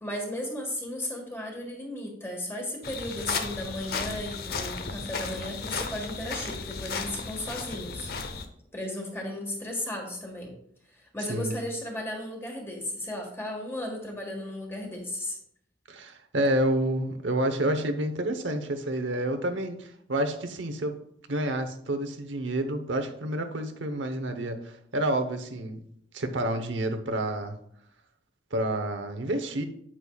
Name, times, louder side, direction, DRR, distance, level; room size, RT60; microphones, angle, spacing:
voice 1, 0.0-8.1 8.7-10.5 10.9-15.4, left 1 dB, 15° left, 0 dB, 1.6 m, -35 dB
sound 1, 2.8-8.4, left 4 dB, 55° left, 0.7 m, -34 dB
voice 2, 15.9-21.0 21.3-25.8 26.1-27.6 28.5-29.6, right 1 dB, 90° right, 7 dB, 0.9 m, -29 dB
8.9 x 8.6 x 2.4 m, 0.71 s
head